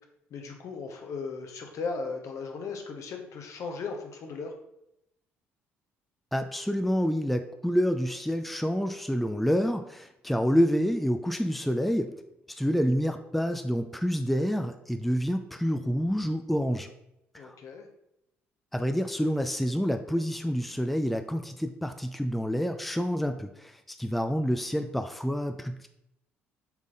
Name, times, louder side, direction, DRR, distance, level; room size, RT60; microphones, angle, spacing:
voice 1, 0.3-4.5 17.4-17.9, left 4 dB, 55° left, 3 dB, 1.1 m, -37 dB
voice 2, 6.3-12.1 12.5-16.9 17.3-17.5 18.7-25.9, equal, ahead, 7 dB, 0.5 m, -28 dB
7.2 x 3.7 x 3.9 m, 0.82 s
figure-of-eight pair, 50°, 6 cm